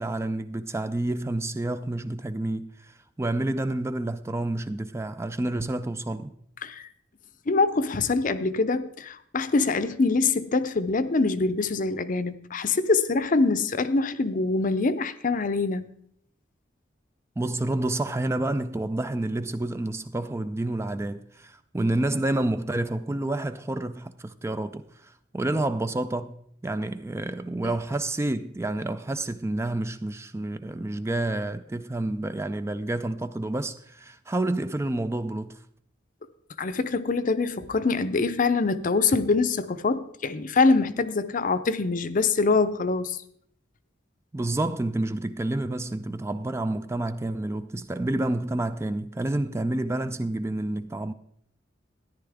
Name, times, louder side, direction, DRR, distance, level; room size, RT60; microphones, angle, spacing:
voice 1, 0.0-6.3 17.4-35.6 44.3-51.1, right 2 dB, 15° right, 0.3 m, -29 dB
voice 2, 7.5-15.9 27.6-27.7 36.6-43.2, left 3 dB, 45° left, 0.6 m, -24 dB
13.5 x 10.5 x 3.5 m
head